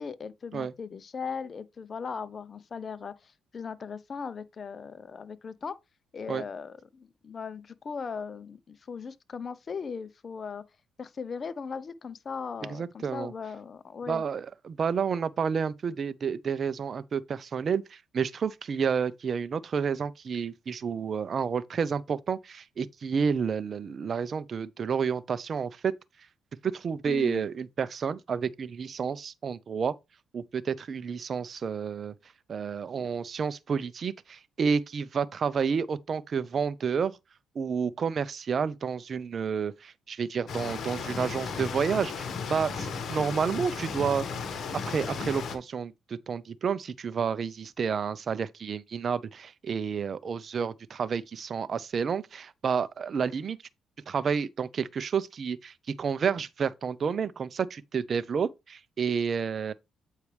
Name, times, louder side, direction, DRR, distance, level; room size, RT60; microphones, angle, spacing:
voice 1, 0.0-5.7 6.1-10.6 11.0-14.2 27.1-27.4, left 5 dB, 40° left, 0.7 m, -38 dB
voice 2, 12.7-13.3 14.1-25.9 26.6-29.9 30.3-32.1 32.5-37.2 37.5-44.3 44.9-53.6 54.1-59.7, right 6 dB, 50° right, 0.7 m, -30 dB
sound 1, 40.5-45.6, left 5 dB, 60° left, 1.6 m, -35 dB
8.4 x 4.7 x 3.3 m
cardioid pair, 90°, 0 cm